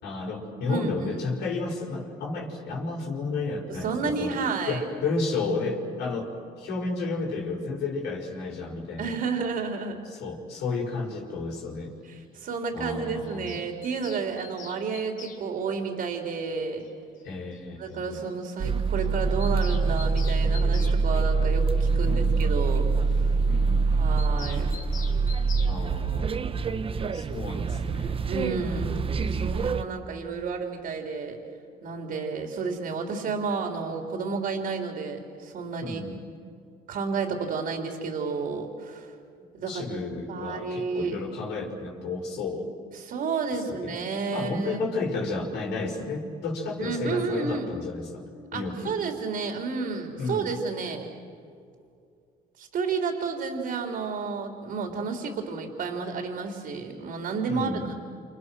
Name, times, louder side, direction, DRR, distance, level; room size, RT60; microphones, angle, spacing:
voice 1, 0.0-4.4 4.7-6.3 6.6-9.1 10.1-11.9 12.7-13.6 17.2-18.2 22.0-22.4 23.4-24.0 25.7-26.4 27.1-28.3 35.8-36.3 39.7-42.7 43.8-43.9 44.3-48.2 48.5-49.0 50.2-50.5 57.5-57.9, left 3 dB, 80° left, 0 dB, 5.7 m, -32 dB
voice 2, 0.7-1.2 3.7-4.8 9.0-10.0 12.0-16.9 17.8-22.8 23.9-24.7 28.3-31.4 31.8-36.0 36.9-39.1 39.5-40.0 40.3-41.2 42.9-44.8 46.8-47.7 48.5-51.1 52.6-57.7, right 4 dB, 60° right, 2 dB, 3.7 m, -31 dB
Bird vocalization bird call bird song, 13.2-15.4 16.8-16.9 17.2-17.3 17.5-17.6 17.9-18.0 18.2-18.3 18.6-18.7 19.0-21.0 24.2-25.7, left 6 dB, 50° left, 3.4 m, -44 dB
sound 1, 18.6-29.8, right 4 dB, 35° right, 1.1 m, -25 dB
28.5 x 28.0 x 6.3 m, 2.4 s
cardioid pair, 110°, 17 cm